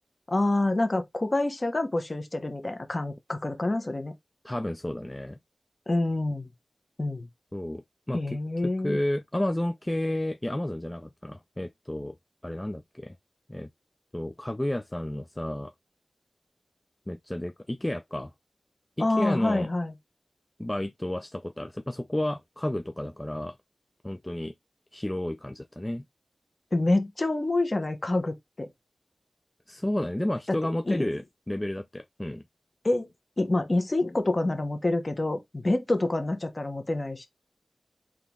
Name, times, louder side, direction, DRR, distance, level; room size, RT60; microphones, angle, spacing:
voice 1, 0.3-4.1 5.9-6.5 7.0-7.3 8.1-9.0 19.0-19.9 26.7-28.7 30.9-31.1 32.8-33.1 33.4-37.3, left 2 dB, 35° left, 1.1 m, -27 dB
voice 2, 4.4-5.4 7.5-8.4 8.6-12.1 12.4-13.1 13.5-13.7 14.1-15.7 17.1-18.3 19.0-19.7 20.6-23.6 24.0-24.5 24.9-26.1 29.7-32.4, left 1 dB, 15° left, 0.3 m, -31 dB
3.8 x 3.0 x 3.6 m
wide cardioid pair, 65°, 0 cm